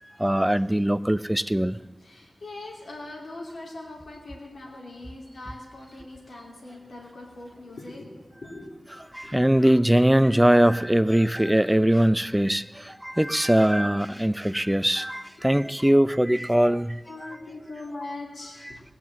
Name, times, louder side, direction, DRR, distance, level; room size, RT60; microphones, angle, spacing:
voice 1, 0.0-1.8 9.1-17.4 18.6-18.8, right 1 dB, 10° right, 15 dB, 0.4 m, -21 dB
voice 2, 2.0-8.1 8.4-8.7 9.2-9.5 17.1-18.8, left 2 dB, 85° left, -1 dB, 2.9 m, -41 dB
19.5 x 7.5 x 7.4 m, 1.2 s
wide cardioid pair, 75°, 0 cm